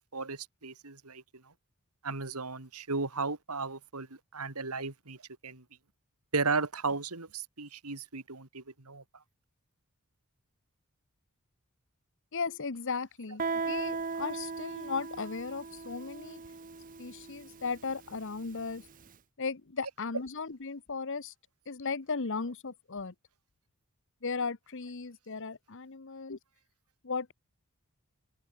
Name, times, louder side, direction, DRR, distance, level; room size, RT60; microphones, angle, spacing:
voice 1, 0.1-1.2 2.0-4.1 4.3-5.2 5.4-5.6 6.3-9.0, right 4 dB, 85° right, 2.6 m, -35 dB
voice 2, 12.3-16.4 17.0-18.8 19.4-21.3 21.7-23.1 24.2-26.4 27.0-27.3, left 4 dB, 60° left, 1.0 m, -36 dB
Guitar, 13.4-18.8, right 4 dB, 35° right, 0.9 m, -38 dB
head